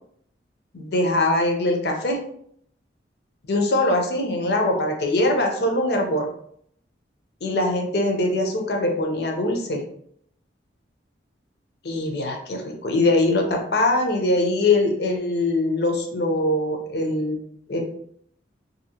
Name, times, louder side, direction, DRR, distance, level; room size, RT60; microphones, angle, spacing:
voice 1, 0.7-2.2 3.5-6.3 7.4-9.8 11.8-17.4 17.7-17.8, left 2 dB, 60° left, 3 dB, 0.6 m, -22 dB
2.7 x 2.6 x 2.7 m, 0.66 s
head